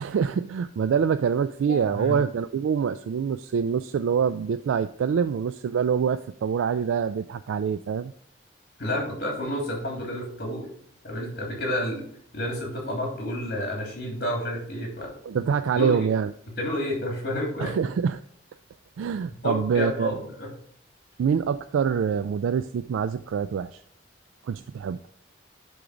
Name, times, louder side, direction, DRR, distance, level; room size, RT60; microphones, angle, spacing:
voice 1, 0.0-8.1 15.2-16.3 17.6-18.2 19.0-20.2 21.2-23.8 24.4-25.0, right 7 dB, 90° right, 12 dB, 0.3 m, -25 dB
voice 2, 1.7-2.2 8.8-10.7 11.0-12.0 12.3-15.4 15.7-16.1 16.5-17.9 19.3-20.5, left 1 dB, 50° left, -1 dB, 3.0 m, -30 dB
9.8 x 3.9 x 5.0 m, 0.62 s
head